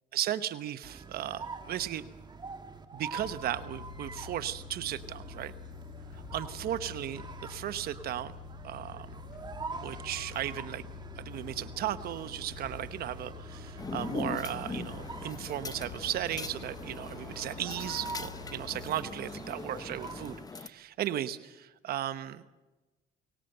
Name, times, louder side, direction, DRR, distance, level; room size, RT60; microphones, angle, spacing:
voice 1, 0.1-2.1 2.9-5.5 6.3-8.3 8.6-9.1 9.8-10.8 11.2-22.4, right 12 dB, 65° right, 12 dB, 1.0 m, -36 dB
sound 1, 0.8-20.5, right 4 dB, 25° right, 2.0 m, -46 dB
sound 2, 3.2-18.9, left 10 dB, 80° left, 2.8 m, -47 dB
sound 3, 13.8-20.7, left 4 dB, 20° left, 0.9 m, -41 dB
23.0 x 19.5 x 7.9 m, 1.1 s
cardioid pair, 110°, 17 cm